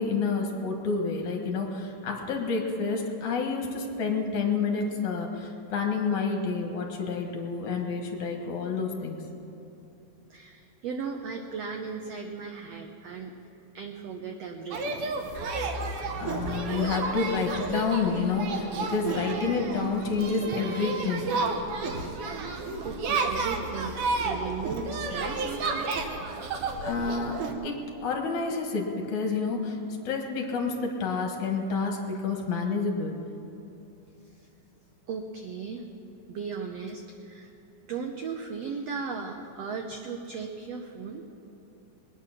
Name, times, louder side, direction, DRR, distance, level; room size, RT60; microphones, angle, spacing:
voice 1, 0.0-9.2 16.2-21.3 26.8-27.4 27.6-29.8 30.0-33.2, left 4 dB, 65° left, 1 dB, 2.7 m, -29 dB
voice 2, 10.3-13.3 13.7-15.0 22.8-24.0 24.2-25.9 34.3-34.5 35.1-35.8 36.3-37.5 37.9-41.2, right 5 dB, 85° right, 4 dB, 1.4 m, -36 dB
sound 1, 14.7-27.5, right 3 dB, 70° right, 1.4 m, -31 dB
21.5 x 9.4 x 5.9 m, 3.0 s
omnidirectional pair, 3.9 m